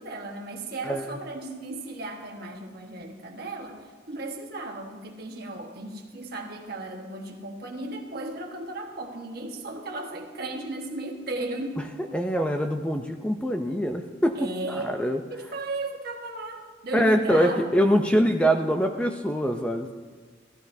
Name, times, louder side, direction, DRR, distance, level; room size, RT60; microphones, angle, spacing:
voice 1, 0.0-11.9 14.3-15.0 15.3-17.7, right 2 dB, 50° right, 2 dB, 1.3 m, -35 dB
voice 2, 12.1-15.2 16.9-19.9, equal, 5° left, 4 dB, 0.4 m, -24 dB
16.0 x 13.0 x 2.7 m, 1.5 s
head